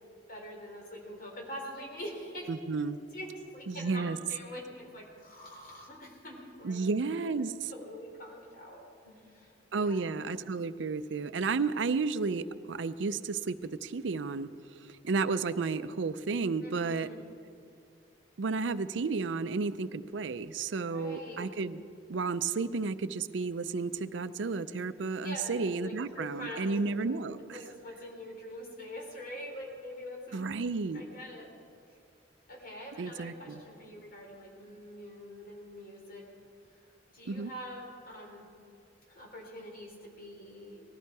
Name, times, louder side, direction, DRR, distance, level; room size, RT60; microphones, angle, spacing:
voice 1, 0.3-2.5 3.1-3.3 3.5-10.0 16.6-17.2 20.8-21.5 25.2-30.5 30.9-31.5 31.9-32.0 32.5-36.2 36.7-36.8 37.1-38.5 39.1-40.8, equal, 50° left, 0 dB, 3.3 m, -45 dB
voice 2, 2.5-3.0 3.7-4.2 6.6-7.7 9.7-14.5 14.7-17.1 18.4-21.8 22.1-27.6 30.3-31.0 33.0-33.6 37.3-37.5, right 4 dB, 80° right, 14 dB, 0.5 m, -32 dB
19.5 x 14.0 x 4.7 m, 2.3 s
head